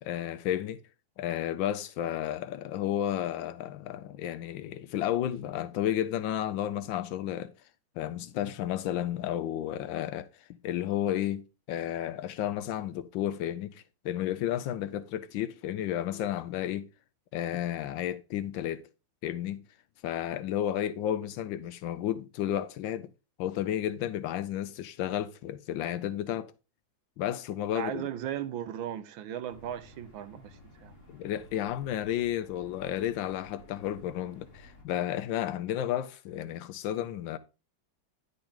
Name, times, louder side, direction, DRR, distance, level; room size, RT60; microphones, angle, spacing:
voice 1, 0.0-0.8 1.2-7.5 8.0-16.9 17.3-18.8 19.2-19.6 20.0-23.1 23.4-26.5 27.2-28.1 31.1-37.4, left 11 dB, 80° left, 1.3 m, -32 dB
voice 2, 27.7-30.9, right 10 dB, 85° right, 1.6 m, -37 dB
sound 1, 29.5-34.8, left 1 dB, 30° left, 2.8 m, -54 dB
10.0 x 6.0 x 3.6 m
omnidirectional pair, 2.1 m